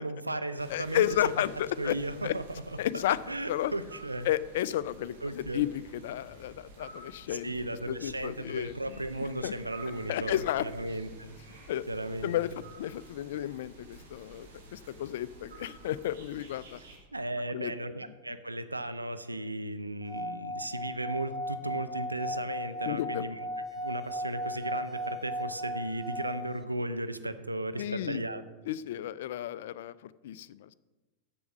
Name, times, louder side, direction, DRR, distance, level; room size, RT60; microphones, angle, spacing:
voice 1, 0.0-1.3 1.8-4.3 5.2-5.6 7.3-11.3 11.9-12.6 17.1-23.5 23.7-28.4, right 1 dB, 85° right, 11 dB, 0.5 m, -36 dB
sound 1, 0.6-17.0, right 2 dB, 60° right, 1.8 m, -51 dB
voice 2, 0.7-2.0 2.2-2.3 2.8-3.2 3.5-3.7 4.3-7.5 7.9-8.7 9.4-9.5 10.1-10.6 11.7-11.8 12.2-12.5 12.8-16.8 17.5-17.7 22.8-23.2 27.8-28.2 28.7-29.9 30.2-30.7, left 12 dB, 55° left, 18 dB, 0.3 m, -32 dB
Singing / Glass, 20.0-26.6, equal, 15° right, 0.7 m, -36 dB
7.0 x 7.0 x 6.1 m, 1.2 s
figure-of-eight pair, 90°, 0 cm